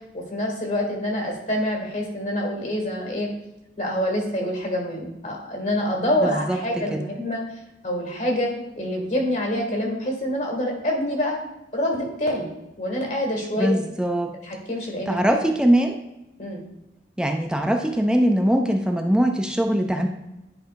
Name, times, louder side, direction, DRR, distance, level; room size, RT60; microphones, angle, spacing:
voice 1, 0.0-3.3 3.8-7.4 7.8-8.5 8.8-11.4 11.7-12.5 12.8-13.8 14.4-15.4 16.4-16.6, left 1 dB, 45° left, 1 dB, 1.9 m, -26 dB
voice 2, 6.2-7.0 13.6-14.3 15.1-16.0 17.2-20.1, right 1 dB, 5° right, 4 dB, 0.4 m, -22 dB
10.5 x 5.4 x 2.5 m, 0.95 s
head